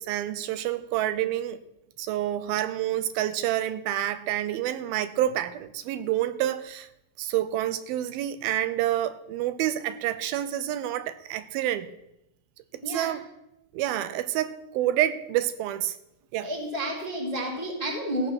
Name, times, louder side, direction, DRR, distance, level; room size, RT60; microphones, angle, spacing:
voice 1, 0.0-1.6 2.0-6.9 7.2-11.9 12.9-13.2 13.7-16.0 16.3-16.5, right 12 dB, 85° right, 2.5 m, -28 dB
voice 2, 16.4-18.3, right 1 dB, 25° left, 0.8 m, -30 dB
14.5 x 8.0 x 6.1 m
omnidirectional pair, 4.3 m